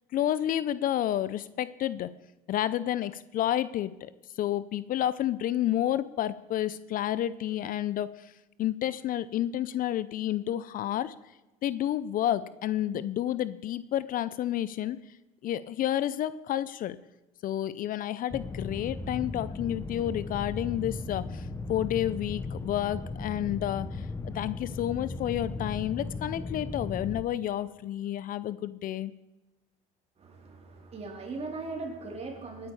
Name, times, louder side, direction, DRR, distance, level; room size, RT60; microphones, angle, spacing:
voice 1, 0.1-2.1 2.5-4.1 4.4-8.3 8.6-11.1 11.6-15.0 15.4-17.0 17.4-29.1, left 12 dB, 50° left, 16 dB, 0.6 m, -30 dB
sound 1, 18.3-27.2, left 3 dB, 15° left, 1.1 m, -37 dB
voice 2, 30.2-32.7, right 3 dB, 35° right, 2 dB, 3.7 m, -39 dB
19.0 x 9.9 x 4.8 m, 1.0 s
supercardioid pair, 90°, 19 cm